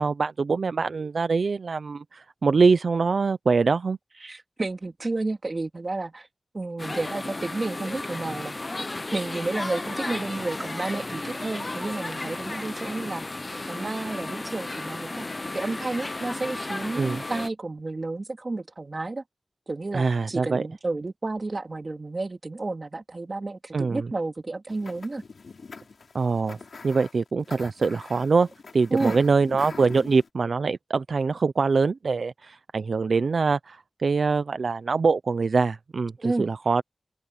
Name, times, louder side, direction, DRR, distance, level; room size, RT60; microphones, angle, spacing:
voice 1, 0.0-4.0 16.9-17.2 19.9-20.6 23.7-24.1 26.1-26.6 26.8-36.1 36.4-36.8, right 4 dB, 80° right, 0.5 m, -24 dB
voice 2, 4.2-6.3 6.5-8.6 9.1-13.2 13.7-15.3 15.5-19.2 19.7-25.2 28.9-29.2 36.2-36.5, right 2 dB, 45° right, 2.4 m, -31 dB
sound 1, 6.8-17.5, left 2 dB, 35° left, 0.7 m, -34 dB
sound 2, 24.7-30.3, left 4 dB, 85° left, 4.5 m, -44 dB
open air
wide cardioid pair, 80°, 0 cm